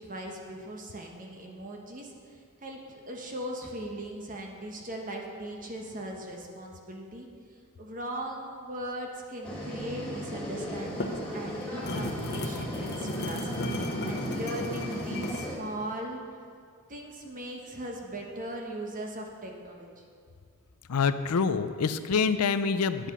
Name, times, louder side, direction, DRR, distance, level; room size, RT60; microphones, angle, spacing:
voice 1, 0.0-7.3 7.8-16.2 16.9-19.9, right 1 dB, 35° right, 1 dB, 1.3 m, -39 dB
sound 1, 9.4-15.6, equal, 5° left, 2.3 m, -37 dB
sound 2, 10.8-15.5, left 1 dB, 50° left, 1.1 m, -34 dB
voice 2, 20.9-23.1, left 5 dB, 80° left, 12 dB, 0.5 m, -26 dB
10.0 x 8.5 x 5.5 m, 2.2 s
head